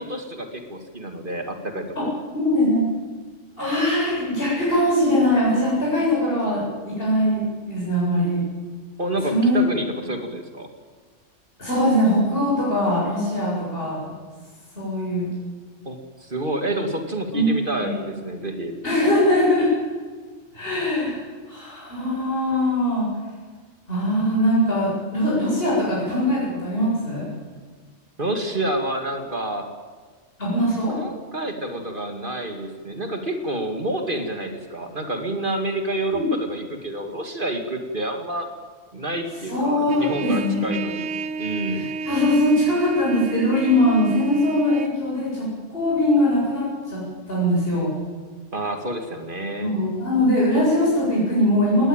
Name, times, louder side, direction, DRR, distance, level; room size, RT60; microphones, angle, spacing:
voice 1, 0.0-2.1 9.0-10.7 15.9-18.8 28.2-29.7 30.9-38.5 38.9-41.1 41.4-41.9 48.5-49.7, right 1 dB, 45° right, 5 dB, 2.3 m, -28 dB
voice 2, 2.3-2.8 3.6-8.4 9.2-9.6 11.6-14.1 14.7-15.3 17.3-17.5 17.8-17.9 18.8-19.7 20.5-21.2 21.5-23.1 23.9-27.3 30.4-31.0 36.1-36.3 39.5-40.7 41.7-47.0 47.3-47.9 49.6-51.9, left 1 dB, 50° left, -7 dB, 8.2 m, -21 dB
Trumpet, 39.9-44.9, right 6 dB, 80° right, 1.2 m, -30 dB
19.5 x 19.5 x 9.1 m, 1.5 s
omnidirectional pair, 1.3 m